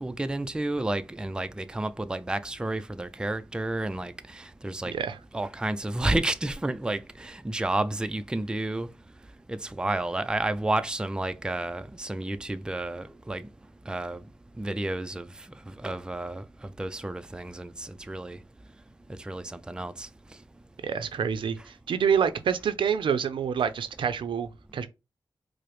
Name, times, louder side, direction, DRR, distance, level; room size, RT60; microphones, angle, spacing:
voice 1, 0.0-4.9 5.3-8.9 9.5-13.4 13.9-14.2 14.6-15.3 15.8-16.4 16.8-18.4 19.3-20.1, right 2 dB, 10° right, 0.3 m, -31 dB
voice 2, 4.9-5.2 20.8-21.6 21.9-24.9, right 7 dB, 80° right, 0.4 m, -27 dB
4.8 x 2.0 x 3.0 m
cardioid pair, 65°, 8 cm